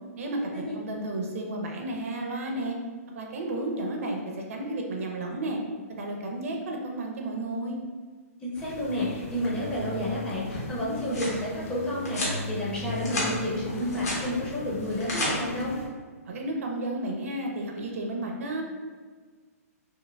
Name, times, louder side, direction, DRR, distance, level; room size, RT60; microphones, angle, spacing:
voice 1, 0.2-2.8 3.1-4.2 4.5-5.6 6.0-7.8 16.2-18.6, right 1 dB, 60° right, 1 dB, 0.6 m, -32 dB
voice 2, 8.4-15.8, left 1 dB, 10° left, -7 dB, 0.6 m, -30 dB
sound 1, 8.6-15.9, left 2 dB, 55° left, 0.5 m, -38 dB
sound 2, 10.7-11.4 12.0-12.4 12.8-13.3 13.7-14.2 14.8-15.3, left 1 dB, 85° left, 1.2 m, -32 dB
4.4 x 2.0 x 2.2 m, 1.5 s
hypercardioid pair, 155°, 8 cm